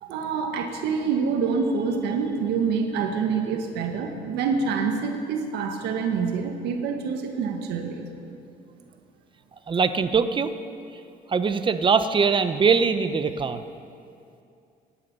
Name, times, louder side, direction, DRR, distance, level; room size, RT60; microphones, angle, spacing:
voice 1, 0.0-8.0, right 5 dB, 85° right, 3 dB, 1.7 m, -26 dB
voice 2, 9.7-10.5 11.3-13.6, right 5 dB, 30° right, 10 dB, 0.9 m, -22 dB
24.0 x 10.0 x 5.5 m, 2.5 s
cardioid pair, 110°, 17 cm